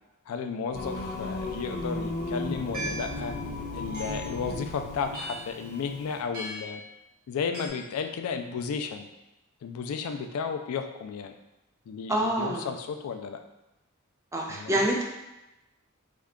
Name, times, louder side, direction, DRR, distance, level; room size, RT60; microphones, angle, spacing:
voice 1, 0.3-3.3 3.7-6.8 7.3-9.1 9.6-11.3 11.9-13.4 14.5-14.8, left 6 dB, 75° left, 6 dB, 0.3 m, -33 dB
Singing, 0.7-6.2, left 2 dB, 50° left, 0.8 m, -35 dB
sound 1, 2.7-3.2 3.9-4.4 5.1-5.6 6.3-6.8 7.5-7.7, right 1 dB, 45° right, 1.3 m, -37 dB
voice 2, 12.1-12.7 14.3-15.0, right 1 dB, 15° right, -1 dB, 0.5 m, -27 dB
3.5 x 2.2 x 3.5 m, 0.96 s
head